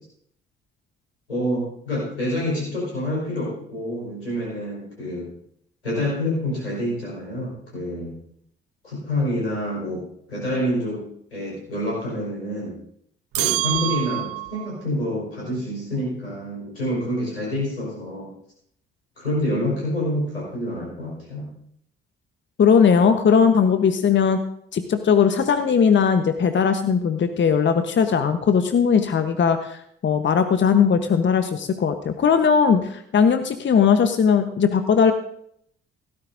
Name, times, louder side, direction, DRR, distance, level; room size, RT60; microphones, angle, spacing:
voice 1, 1.3-5.3 5.8-8.1 8.8-10.0 10.3-12.8 13.4-18.3 19.2-21.5, left 1 dB, 90° left, -5 dB, 5.1 m, -27 dB
sound 1, 13.3-14.7, right 18 dB, 50° right, 0.4 m, -25 dB
voice 2, 22.6-24.4 24.7-35.1, left 6 dB, 40° left, 8 dB, 1.1 m, -19 dB
17.0 x 13.5 x 2.7 m, 0.70 s
figure-of-eight pair, 45°, 30 cm